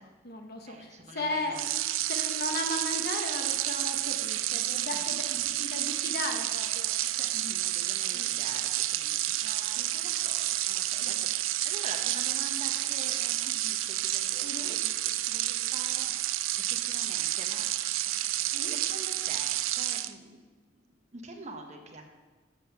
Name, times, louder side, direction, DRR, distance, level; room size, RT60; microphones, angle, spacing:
voice 1, 0.0-1.7 2.1-7.3 8.1-8.3 9.8-9.9 11.0-11.3 14.4-14.8 18.5-18.7, left 2 dB, 50° left, 4 dB, 1.0 m, -37 dB
voice 2, 0.6-1.6 4.9-5.4 7.3-16.2 16.6-17.7 18.6-20.4 20.7-22.1, right 2 dB, 35° right, 3 dB, 1.0 m, -46 dB
sound 1, 1.5-20.1, right 14 dB, 80° right, 0.4 m, -30 dB
7.6 x 7.3 x 5.6 m, 1.3 s
head